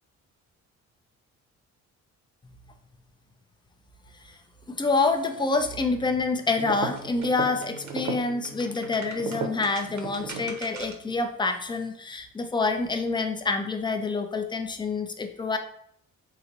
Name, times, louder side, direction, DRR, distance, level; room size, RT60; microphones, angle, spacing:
voice 1, 4.7-15.6, left 3 dB, 15° left, 7 dB, 0.4 m, -27 dB
sound 1, 6.5-11.1, right 4 dB, 70° right, 0.7 m, -36 dB
3.8 x 2.6 x 2.9 m, 0.69 s
cardioid pair, 90°, 30 cm